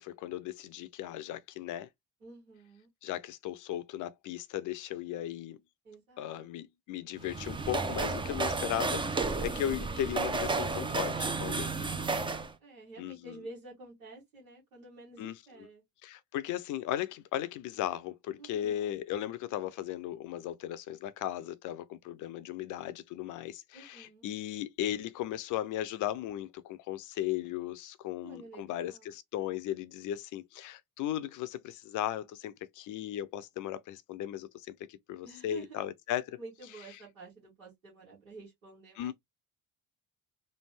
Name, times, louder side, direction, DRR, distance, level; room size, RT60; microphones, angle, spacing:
voice 1, 0.0-1.9 3.0-5.6 6.2-11.7 13.0-13.4 15.2-15.3 16.0-36.4 39.0-39.1, left 12 dB, 45° left, 0.6 m, -36 dB
voice 2, 2.2-2.9 5.8-6.5 11.7-15.8 18.4-18.9 23.7-24.3 28.2-29.1 35.2-35.8 36.4-39.1, right 3 dB, 80° right, 1.9 m, -50 dB
sound 1, 7.2-12.5, right 3 dB, 10° right, 0.5 m, -32 dB
3.3 x 2.5 x 3.2 m
figure-of-eight pair, 45°, 42 cm